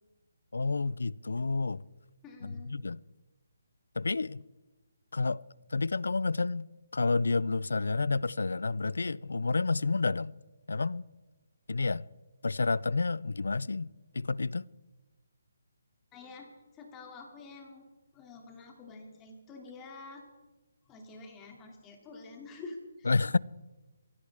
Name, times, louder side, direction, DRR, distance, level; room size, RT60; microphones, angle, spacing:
voice 1, 0.5-1.9 2.4-3.0 4.0-4.4 5.1-5.4 5.7-6.7 6.9-10.4 10.7-11.1 11.7-12.1 12.4-13.9 14.1-14.7 23.1-23.4, left 3 dB, 85° left, 0.5 m, -30 dB
voice 2, 2.2-2.7 16.1-17.9 18.1-20.2 20.8-23.4, left 3 dB, 15° left, 2.7 m, -48 dB
24.0 x 16.5 x 3.6 m
hypercardioid pair, 160°, 0 cm